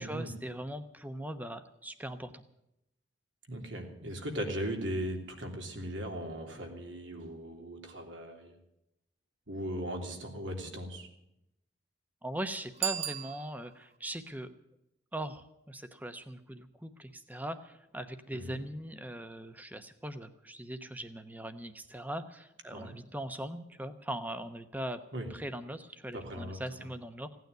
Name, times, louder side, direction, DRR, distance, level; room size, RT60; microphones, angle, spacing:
voice 1, 0.0-2.4 12.2-14.5 15.1-25.0 25.3-27.3, right 1 dB, 10° right, 10 dB, 0.9 m, -40 dB
voice 2, 3.5-8.5 9.5-11.1 18.3-18.6 22.7-23.0 25.1-25.3 26.1-26.6, equal, 80° right, 2 dB, 3.1 m, -38 dB
Bicycle bell, 12.7-14.0, right 11 dB, 35° right, 0.7 m, -36 dB
16.5 x 9.3 x 9.4 m, 0.83 s
head